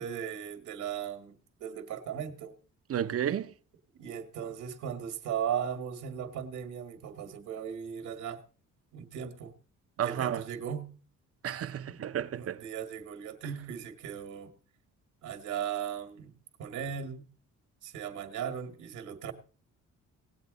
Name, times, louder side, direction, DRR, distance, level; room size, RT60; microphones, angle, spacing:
voice 1, 0.0-2.5 4.0-8.4 8.9-9.5 10.0-10.9 11.9-14.5 15.2-17.3 17.8-19.3, right 8 dB, 85° right, 1.8 m, -37 dB
voice 2, 2.9-3.5 10.0-10.4 11.4-12.6, right 10 dB, 50° right, 0.7 m, -32 dB
18.5 x 7.9 x 4.1 m
cardioid pair, 90°, 30 cm